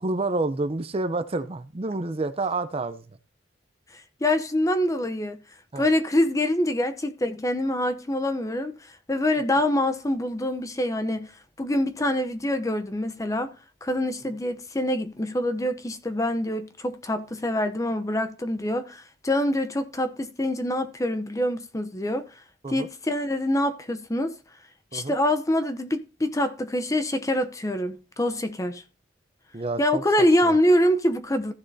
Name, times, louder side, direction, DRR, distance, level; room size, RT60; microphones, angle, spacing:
voice 1, 0.0-3.0 5.7-5.9 22.6-22.9 24.9-25.1 29.5-30.0 30.4-30.6, right 2 dB, 30° right, 0.6 m, -29 dB
voice 2, 3.9-5.4 5.8-11.3 11.6-13.5 13.8-22.3 22.7-24.3 24.9-28.8 29.8-31.5, left 1 dB, 20° left, 0.7 m, -25 dB
14.5 x 6.7 x 2.7 m
head